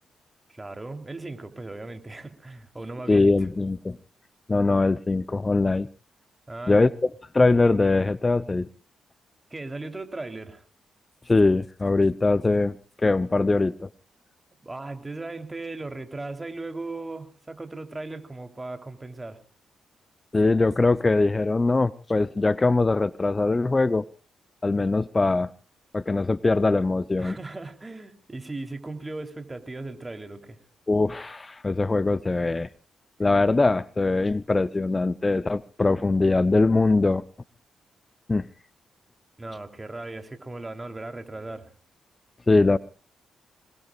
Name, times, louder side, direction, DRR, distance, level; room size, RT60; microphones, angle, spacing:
voice 1, 0.5-3.3 6.5-6.9 9.5-10.6 14.6-19.4 27.2-30.6 39.4-41.7, right 2 dB, 25° right, 6 dB, 3.5 m, -37 dB
voice 2, 3.1-4.0 4.5-5.9 6.7-8.7 11.3-13.9 20.3-24.1 24.6-25.5 25.9-27.4 30.9-32.7 33.2-37.2 38.3-38.5 42.5-42.8, left 3 dB, 30° left, 17 dB, 0.7 m, -22 dB
26.5 x 20.5 x 2.5 m, 0.35 s
hypercardioid pair, 45°, 0 cm